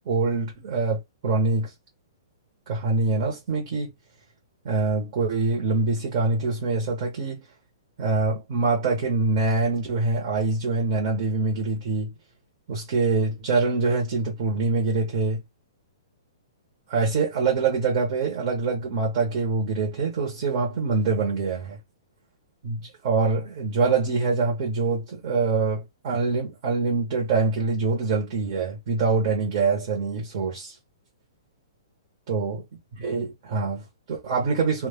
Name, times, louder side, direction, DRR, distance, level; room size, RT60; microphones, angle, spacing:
voice 1, 0.1-1.7 2.7-3.9 4.6-7.4 8.0-12.1 12.7-15.4 16.9-21.8 22.6-30.7 32.3-32.6 32.9-34.9, right 3 dB, 35° right, 0.7 m, -24 dB
2.1 x 2.0 x 3.4 m
hypercardioid pair, 175°, 3 cm